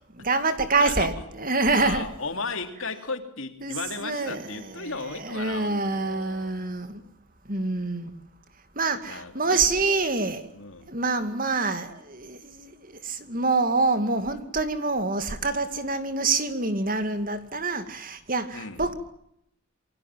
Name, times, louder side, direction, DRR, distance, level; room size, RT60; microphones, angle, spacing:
voice 1, 0.2-2.0 3.6-7.0 7.5-8.2 8.8-10.5 10.9-18.9, right 3 dB, 40° right, 2.4 m, -26 dB
voice 2, 0.8-1.1 1.8-6.7 9.1-9.8 10.5-10.9 18.5-18.8, left 4 dB, 65° left, 3.2 m, -35 dB
28.5 x 23.5 x 7.6 m
head